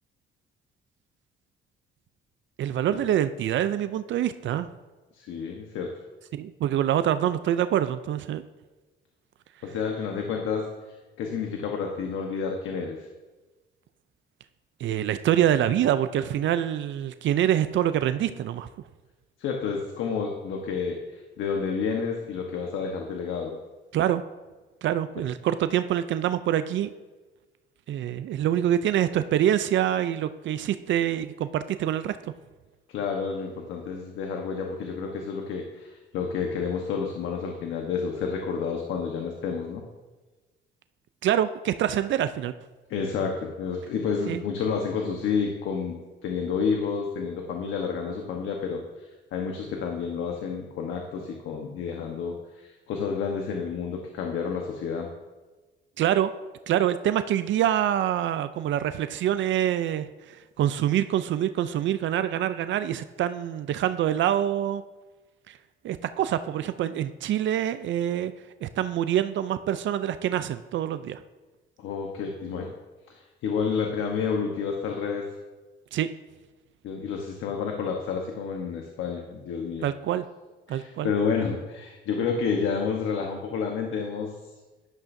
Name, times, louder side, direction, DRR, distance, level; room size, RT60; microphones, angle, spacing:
voice 1, 2.6-4.7 6.3-8.4 14.8-18.7 23.9-24.2 24.8-26.9 27.9-32.2 41.2-42.5 44.3-44.4 56.0-56.3 56.7-64.8 65.5-65.6 65.8-68.3 68.6-71.2 75.9-76.1 79.8-80.2 80.7-81.1, right 11 dB, 70° right, 12 dB, 0.5 m, -25 dB
voice 2, 5.2-5.9 9.6-10.7 11.2-13.0 19.4-23.6 32.9-39.8 42.9-46.0 46.2-48.8 49.3-55.1 71.8-72.7 73.1-75.2 76.8-79.8 80.7-84.3, left 5 dB, 85° left, 2 dB, 1.2 m, -30 dB
12.0 x 11.5 x 2.7 m, 1.2 s
cardioid pair, 90°, 20 cm